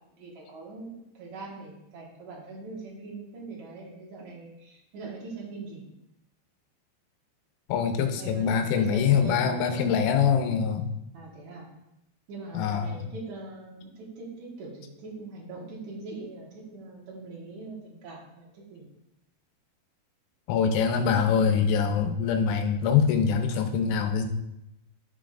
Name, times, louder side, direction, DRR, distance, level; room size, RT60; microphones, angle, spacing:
voice 1, 0.0-5.9 8.0-10.1 11.1-11.7 12.3-18.9, right 3 dB, 70° right, -3 dB, 1.8 m, -41 dB
voice 2, 7.7-10.9 12.5-13.0 20.5-24.3, left 7 dB, 80° left, 5 dB, 3.2 m, -24 dB
13.0 x 5.6 x 2.5 m, 0.86 s
omnidirectional pair, 5.6 m